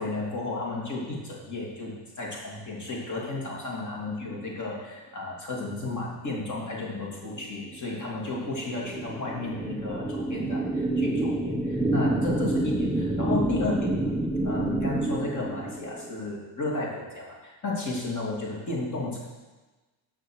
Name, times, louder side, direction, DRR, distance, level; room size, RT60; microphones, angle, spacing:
voice 1, 0.0-19.2, left 2 dB, 35° left, -3 dB, 2.9 m, -33 dB
sound 1, 7.4-16.1, right 2 dB, 5° right, 0.5 m, -28 dB
7.7 x 6.5 x 6.4 m, 1.2 s
cardioid pair, 120°, 49 cm